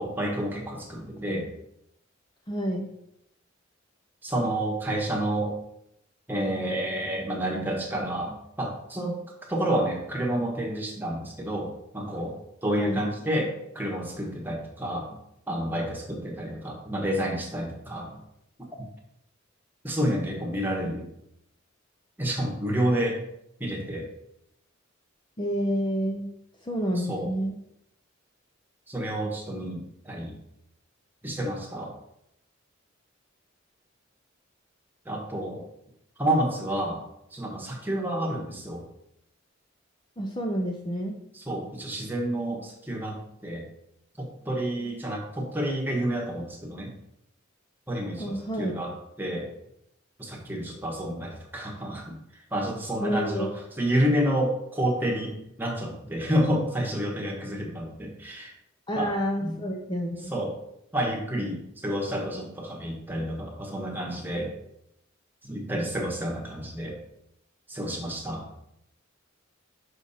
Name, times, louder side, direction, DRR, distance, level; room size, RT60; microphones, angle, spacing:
voice 1, 0.0-1.5 4.2-5.6 6.3-9.2 9.5-15.2 15.5-18.2 18.8-18.9 19.8-21.1 22.2-23.2 23.6-24.1 26.9-27.3 28.9-30.4 31.2-32.0 35.0-35.6 36.2-37.0 37.3-38.8 41.3-43.6 44.2-46.9 47.9-48.9 49.2-49.5 50.2-52.1 52.5-58.5 58.9-59.1 59.4-59.6 60.3-60.5 60.9-64.5 65.4-67.0 67.7-68.5, right 1 dB, 10° right, 0 dB, 1.3 m, -29 dB
voice 2, 2.5-2.9 12.8-13.1 25.4-26.3 26.6-27.5 40.2-41.2 48.2-48.8 53.0-53.5 58.9-60.3, equal, 20° left, 2 dB, 0.6 m, -29 dB
6.1 x 5.2 x 4.2 m, 0.79 s
head